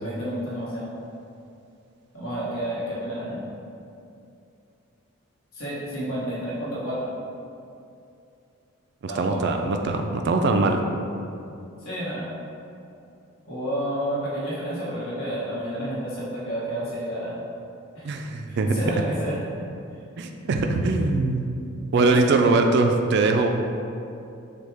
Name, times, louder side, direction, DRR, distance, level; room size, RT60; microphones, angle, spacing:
voice 1, 0.0-0.9 2.1-3.4 5.5-7.1 9.1-9.7 11.8-12.3 13.4-17.3 17.9-18.1 18.5-19.5 21.9-22.2, equal, 75° left, -8 dB, 1.2 m, -30 dB
voice 2, 9.0-10.8 18.0-18.7 20.2-23.5, right 3 dB, 50° right, 4 dB, 0.3 m, -22 dB
6.2 x 2.3 x 3.4 m, 2.6 s
head